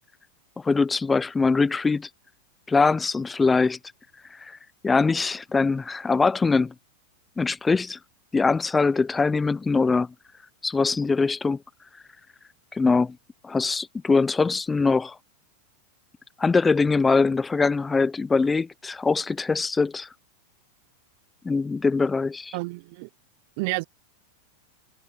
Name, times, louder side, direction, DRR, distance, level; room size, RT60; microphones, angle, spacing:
voice 1, 0.6-2.1 2.7-3.8 4.4-4.6 4.8-6.7 7.4-8.0 8.3-10.1 10.6-11.6 12.7-13.2 13.4-15.2 16.4-20.1 21.4-22.6, left 4 dB, 15° left, 0.5 m, -22 dB
voice 2, 22.5-23.1 23.6-23.8, right 26 dB, 60° right, 0.5 m, -29 dB
hypercardioid pair, 115°, 0 cm